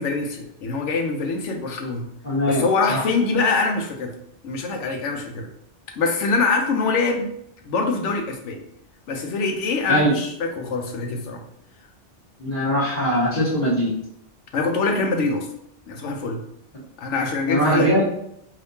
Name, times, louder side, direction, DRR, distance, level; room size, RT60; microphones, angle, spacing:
voice 1, 0.0-2.1 2.5-4.1 4.4-5.5 6.0-7.3 7.6-8.6 9.1-11.4 14.5-15.5 15.9-16.4 17.0-17.9, left 4 dB, 85° left, 3 dB, 1.0 m, -24 dB
voice 2, 2.2-3.0 9.9-10.1 12.4-13.9 17.5-18.0, equal, 40° left, -10 dB, 1.2 m, -21 dB
3.4 x 2.7 x 2.7 m, 0.75 s
omnidirectional pair, 1.2 m